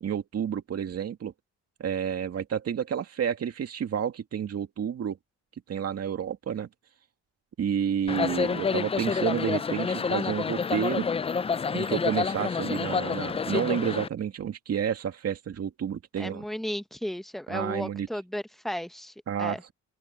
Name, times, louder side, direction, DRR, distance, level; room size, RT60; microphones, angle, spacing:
voice 1, 0.0-1.3 1.8-5.2 5.7-6.7 7.6-11.1 11.7-16.5 17.5-18.1 19.3-19.7, right 8 dB, 55° right, 2.3 m, -30 dB
sound 1, 8.1-14.1, left 5 dB, 20° left, 0.4 m, -28 dB
voice 2, 16.2-19.6, equal, ahead, 1.0 m, -34 dB
open air
cardioid pair, 90°, 30 cm